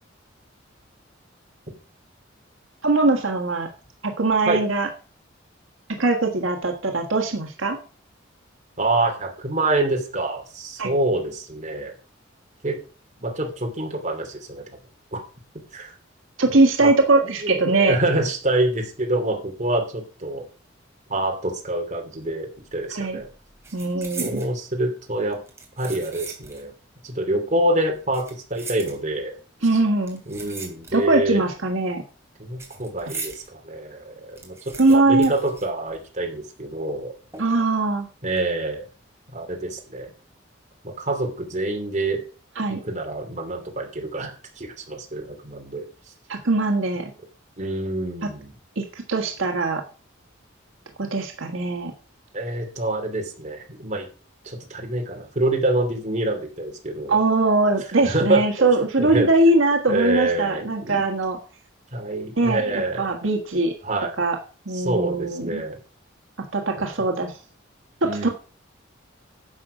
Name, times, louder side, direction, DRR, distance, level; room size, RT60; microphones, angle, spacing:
voice 1, 2.8-3.7 4.0-4.9 6.0-7.8 10.8-10.9 16.4-18.0 22.9-23.2 23.7-24.4 29.6-30.2 30.9-32.0 34.8-35.3 37.4-38.1 42.6-42.8 46.3-47.1 48.2-48.3 48.8-49.8 51.0-51.9 57.1-61.4 62.4-63.7 64.2-64.4 64.6-65.6 66.5-67.4 68.0-68.3, right 2 dB, 80° right, 3 dB, 1.6 m, -21 dB
voice 2, 8.8-11.9 12.6-12.8 13.2-14.8 15.1-15.2 15.7-15.9 16.5-16.9 17.4-20.4 21.1-23.3 24.0-25.4 25.8-26.7 27.0-29.4 30.3-31.4 32.4-37.1 38.2-38.9 39.3-40.1 40.8-42.2 42.7-45.8 47.6-48.5 52.3-54.1 54.4-57.1 58.0-58.7 59.0-59.3 59.9-61.0 61.9-63.1 63.8-64.1 64.7-65.8 68.0-68.3, right 2 dB, 35° right, 2 dB, 2.8 m, -26 dB
sound 1, 22.6-22.9 23.2-24.6 25.3-26.7 27.0-27.1 27.9-29.4 30.0-31.2 31.5-33.5 33.9-34.0 34.2-36.3 36.5-36.6 37.3-37.8 38.2-38.4, right 4 dB, 15° right, 3.0 m, -39 dB
11.5 x 7.7 x 5.0 m, 0.36 s
head